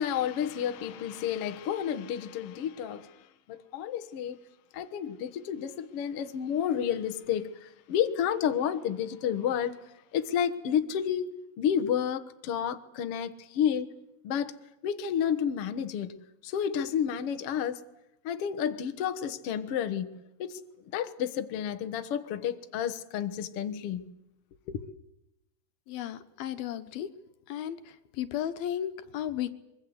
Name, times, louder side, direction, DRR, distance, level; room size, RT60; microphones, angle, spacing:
voice 1, 0.0-3.2 3.5-4.4 4.7-9.7 10.1-13.9 14.2-14.6 14.8-16.2 16.4-17.8 18.2-20.6 20.9-24.1 24.7-24.9, left 9 dB, 60° left, 1.6 m, -31 dB
voice 2, 25.9-27.1 27.5-27.8 28.1-29.5, left 10 dB, 75° left, 2.9 m, -34 dB
25.0 x 23.0 x 8.0 m
omnidirectional pair, 4.4 m